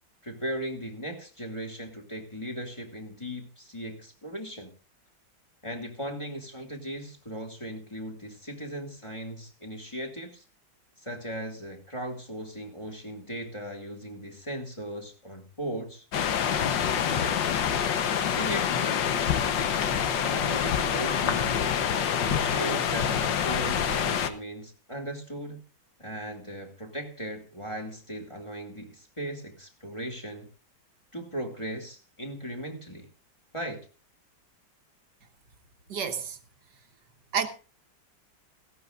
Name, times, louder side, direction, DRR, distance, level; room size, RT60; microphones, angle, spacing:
voice 1, 0.2-4.7 5.6-10.4 11.0-16.1 16.5-17.4 18.0-19.0 20.0-21.7 22.2-25.6 26.0-30.5 31.1-33.1 33.5-33.9, equal, 15° left, 2.5 m, -38 dB
sound 1, 16.1-24.3, left 8 dB, 80° left, 1.7 m, -26 dB
voice 2, 35.9-36.4 37.3-37.5, right 6 dB, 70° right, 1.7 m, -29 dB
17.0 x 15.5 x 2.5 m
omnidirectional pair, 1.9 m